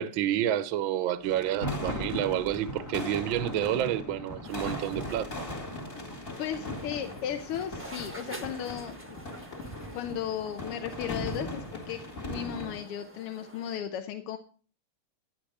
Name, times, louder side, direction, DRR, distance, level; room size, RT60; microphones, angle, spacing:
voice 1, 0.0-5.5, right 11 dB, 70° right, 1.4 m, -29 dB
sound 1, 1.2-12.8, left 2 dB, 25° left, 2.3 m, -40 dB
Thunder, 1.3-9.1, equal, 10° left, 1.5 m, -40 dB
sound 2, 4.4-13.8, right 1 dB, 10° right, 0.9 m, -48 dB
voice 2, 6.4-9.2 9.9-12.0 12.3-14.4, left 9 dB, 90° left, 1.8 m, -35 dB
11.0 x 9.8 x 4.8 m
omnidirectional pair, 2.4 m